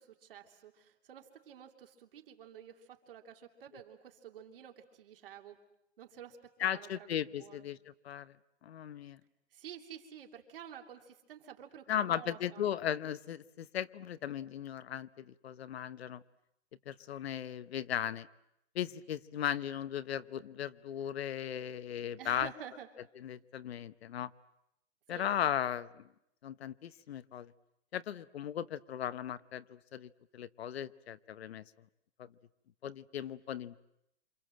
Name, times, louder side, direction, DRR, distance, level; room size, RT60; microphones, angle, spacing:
voice 1, 0.0-5.6 6.0-7.7 9.5-12.7 22.2-22.9 25.1-25.4, right 9 dB, 50° right, 4 dB, 3.0 m, -50 dB
voice 2, 6.6-8.3 8.6-9.2 11.9-16.2 16.9-18.3 18.7-22.5 23.2-24.3 25.1-26.0 26.4-27.5 27.9-31.6 32.2-32.3 32.8-33.8, left 10 dB, 65° left, 14 dB, 1.0 m, -37 dB
28.0 x 27.5 x 7.7 m, 0.80 s
hypercardioid pair, 175°, 35 cm